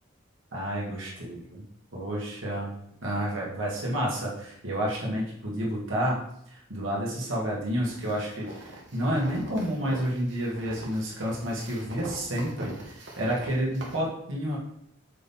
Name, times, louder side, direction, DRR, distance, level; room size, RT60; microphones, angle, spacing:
voice 1, 0.5-1.6 1.9-2.7 3.0-6.2 6.5-14.6, equal, 80° right, -4 dB, 1.8 m, -30 dB
sound 1, 7.8-14.0, right 1 dB, 60° right, 1.4 m, -43 dB
6.4 x 3.7 x 4.2 m, 0.74 s
head